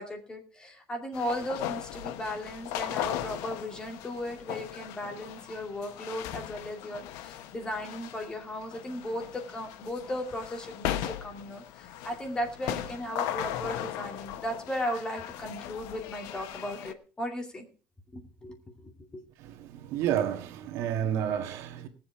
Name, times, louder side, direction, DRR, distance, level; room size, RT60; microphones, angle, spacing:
voice 1, 0.0-17.7 18.1-18.6 19.1-19.2, equal, 15° left, 2.6 m, -36 dB
sound 1, 1.1-16.9, left 12 dB, 80° left, 1.1 m, -38 dB
voice 2, 19.4-21.9, right 10 dB, 65° right, 1.7 m, -30 dB
19.0 x 7.7 x 4.9 m
cardioid pair, 165°, 5 cm